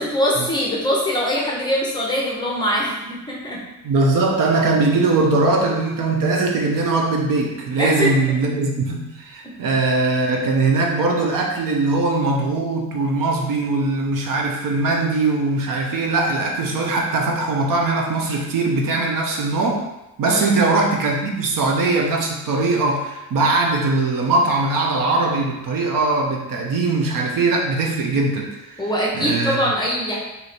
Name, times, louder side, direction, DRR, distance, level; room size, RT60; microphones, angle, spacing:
voice 1, 0.0-3.6 7.8-8.1 20.3-20.5 28.8-30.2, equal, 10° left, -4 dB, 0.6 m, -22 dB
voice 2, 3.8-19.8 20.2-28.9 29.2-29.6, right 3 dB, 60° right, 0 dB, 0.7 m, -20 dB
3.1 x 2.8 x 4.1 m, 0.95 s
cardioid pair, 160°, 36 cm